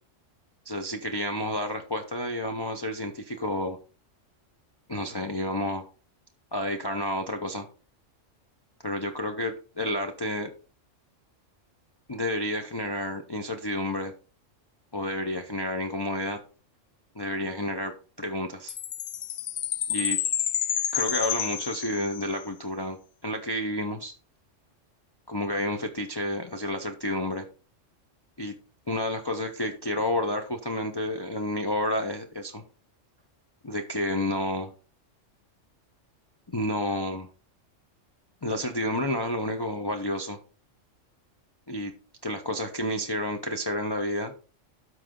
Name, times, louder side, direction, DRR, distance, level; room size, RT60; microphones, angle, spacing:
voice 1, 0.6-3.8 4.9-5.9 6.5-7.7 8.8-10.5 12.1-14.1 14.9-16.4 17.1-18.8 19.9-20.2 20.9-23.0 23.2-24.1 25.3-27.5 28.4-28.5 28.9-32.6 33.6-34.7 36.5-37.3 38.4-40.4 41.7-41.9 42.2-44.3, left 1 dB, 25° left, 3 dB, 0.7 m, -30 dB
Chime, 18.7-22.4, left 10 dB, 60° left, 0.8 m, -29 dB
13.0 x 4.7 x 3.8 m, 0.37 s
omnidirectional pair, 1.3 m